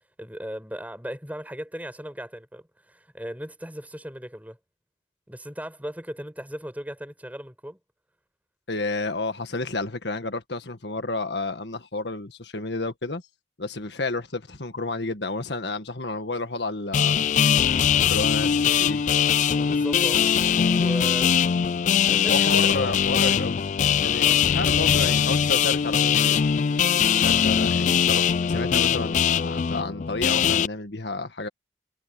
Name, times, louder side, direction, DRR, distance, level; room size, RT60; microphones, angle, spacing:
voice 1, 0.2-4.6 5.3-7.8 19.6-20.2 20.6-21.3 22.1-22.9 24.2-24.4, equal, 10° right, 4.8 m, -37 dB
voice 2, 8.7-13.2 13.6-17.6 18.1-19.0 22.3-23.6 24.0-26.6 27.2-31.5, left 2 dB, 80° left, 1.7 m, -31 dB
sound 1, 16.9-30.7, left 8 dB, 45° left, 0.3 m, -21 dB
head